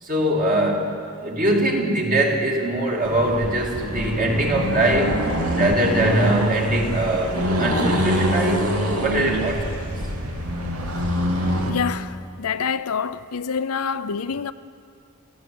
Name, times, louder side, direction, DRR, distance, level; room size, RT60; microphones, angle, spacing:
voice 1, 0.0-5.2 5.5-8.7 9.0-9.8, right 1 dB, 40° right, 2.9 m, -22 dB
Accelerating revving vroom, 3.0-11.8, equal, 90° right, 2.8 m, -25 dB
voice 2, 11.7-14.5, left 6 dB, 75° left, 0.6 m, -26 dB
28.0 x 14.0 x 7.8 m
head